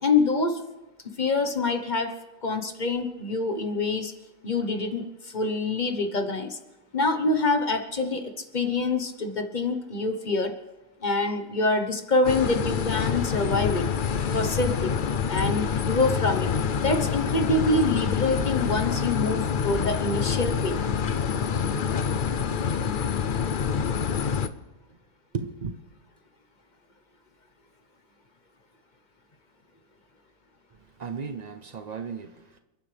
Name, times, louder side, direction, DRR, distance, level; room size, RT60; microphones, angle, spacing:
voice 1, 0.0-0.6 1.2-4.1 4.4-6.6 6.9-10.5 11.0-13.9 14.3-15.0 15.3-16.5 16.8-20.8, left 3 dB, 30° left, 7 dB, 1.1 m, -26 dB
sound 1, 12.2-24.5, left 7 dB, 70° left, 0.4 m, -27 dB
voice 2, 25.3-25.8 30.7-32.6, right 5 dB, 80° right, 8 dB, 0.3 m, -35 dB
30.0 x 10.5 x 3.4 m, 1.0 s
omnidirectional pair, 1.7 m